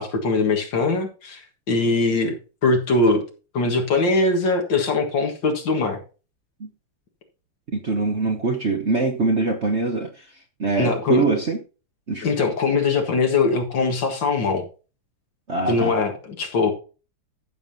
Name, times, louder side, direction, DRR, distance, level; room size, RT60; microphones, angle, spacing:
voice 1, 0.0-2.3 2.6-3.2 3.5-6.0 10.8-11.4 12.2-14.6 15.7-16.7, left 3 dB, 60° left, 3 dB, 2.3 m, -21 dB
voice 2, 7.7-10.2 10.6-11.6 12.1-12.2 15.5-15.9, right 3 dB, 45° right, 2 dB, 1.0 m, -23 dB
14.5 x 7.2 x 2.8 m, 0.34 s
omnidirectional pair, 2.4 m